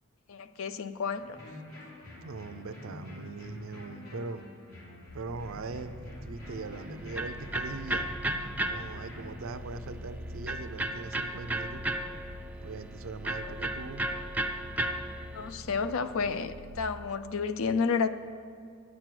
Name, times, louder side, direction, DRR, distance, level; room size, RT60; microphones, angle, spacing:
voice 1, 0.3-1.4 15.3-18.1, left 5 dB, 65° left, 12 dB, 0.4 m, -31 dB
sound 1, 1.2-9.3, left 1 dB, 80° left, 3.1 m, -47 dB
voice 2, 2.2-4.4 5.1-8.1 8.6-11.8 12.6-14.0, right 3 dB, 65° right, 11 dB, 0.5 m, -41 dB
sound 2, 5.1-16.8, equal, 45° left, 2.2 m, -46 dB
Electric guitar, 6.4-15.5, right 1 dB, 5° right, 0.4 m, -35 dB
9.7 x 6.2 x 7.6 m, 2.3 s
head